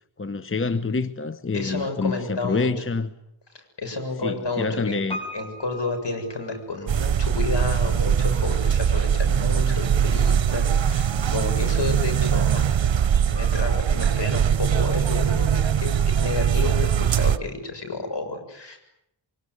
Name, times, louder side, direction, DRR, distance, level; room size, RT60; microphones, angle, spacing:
voice 1, 0.2-3.1 4.2-5.2, left 4 dB, 30° left, 1.0 m, -27 dB
voice 2, 1.5-2.7 3.5-5.0 5.3-12.9 13.2-18.8, left 3 dB, 65° left, 7.3 m, -31 dB
Piano, 5.1-7.1 7.4-7.5, equal, 10° left, 6.2 m, -38 dB
sound 1, 6.9-17.4, right 8 dB, 75° right, 0.9 m, -21 dB
24.0 x 23.0 x 9.7 m
wide cardioid pair, 65°, 45 cm